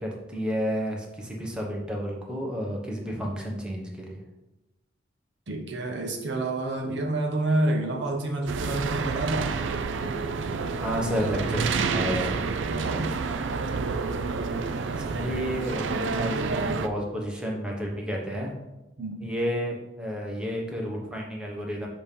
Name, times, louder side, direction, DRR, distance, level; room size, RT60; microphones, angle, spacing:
voice 1, 0.0-4.2 10.8-12.4 15.0-18.5 19.2-21.9, equal, 5° right, -2 dB, 1.0 m, -31 dB
voice 2, 5.5-9.5 12.7-13.4 19.0-19.2, right 2 dB, 65° right, 2 dB, 0.8 m, -29 dB
sound 1, 8.5-16.9, right 4 dB, 85° right, 0.4 m, -29 dB
6.7 x 2.9 x 5.2 m, 0.96 s
head